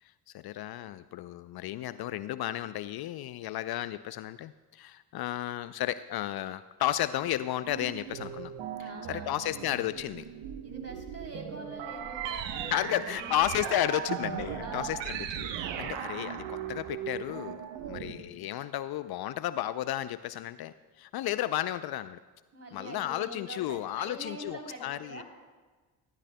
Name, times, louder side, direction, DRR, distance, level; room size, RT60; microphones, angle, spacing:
voice 1, 0.0-8.5 8.8-10.2 12.7-17.6 17.9-22.2 22.7-25.2, left 13 dB, 55° left, 14 dB, 0.5 m, -33 dB
sound 1, 7.6-18.3, right 9 dB, 65° right, 1.0 m, -38 dB
voice 2, 8.8-9.4 10.6-13.4 13.9-14.1 14.6-15.1 15.8-16.3 17.8-18.3 22.5-25.2, right 1 dB, 30° right, 2 dB, 3.4 m, -45 dB
24.5 x 13.0 x 2.2 m, 1.3 s
hypercardioid pair, 50°, 47 cm